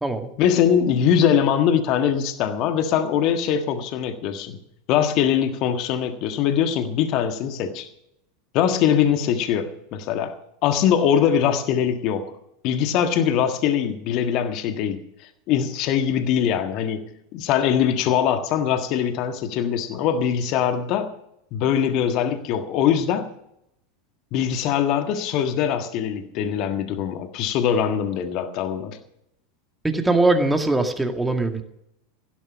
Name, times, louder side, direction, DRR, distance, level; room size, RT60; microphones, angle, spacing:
voice 1, 0.4-4.6 4.9-7.9 8.5-10.3 10.6-12.3 12.6-17.0 17.3-21.1 21.5-23.3 24.3-29.0, left 8 dB, 45° left, 7 dB, 1.6 m, -22 dB
voice 2, 29.8-31.6, right 2 dB, 5° right, 5 dB, 2.0 m, -21 dB
16.0 x 11.0 x 6.0 m, 0.77 s
figure-of-eight pair, 85°, 0 cm